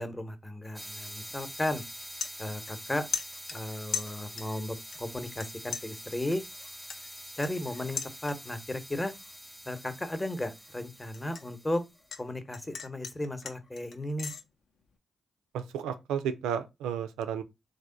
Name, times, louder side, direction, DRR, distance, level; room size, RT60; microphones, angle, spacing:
voice 1, 0.0-1.8 2.4-3.1 3.5-6.4 7.4-9.1 9.7-11.8 12.2-14.3, left 1 dB, 20° left, 0.8 m, -35 dB
sound 1, 0.7-12.0, equal, 5° right, 0.5 m, -46 dB
sound 2, 1.3-1.5 1.9-2.9 3.1-4.6 4.9-5.5 5.7-8.6 9.0-9.4 9.8-12.2 12.5-14.4, left 6 dB, 65° left, 0.6 m, -39 dB
voice 2, 15.5-17.4, right 8 dB, 85° right, 0.3 m, -32 dB
3.3 x 2.1 x 3.8 m
hypercardioid pair, 45°, 0 cm